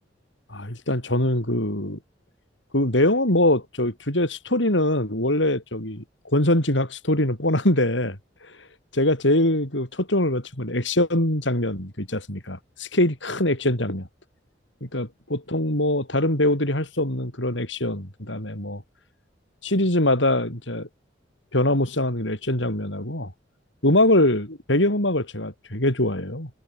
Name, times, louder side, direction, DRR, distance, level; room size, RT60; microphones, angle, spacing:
voice 1, 0.5-2.0 2.7-6.0 6.3-8.2 8.9-14.1 14.8-18.8 19.6-20.9 21.5-23.3 23.8-26.5, left 1 dB, 75° left, 7.2 m, -23 dB
head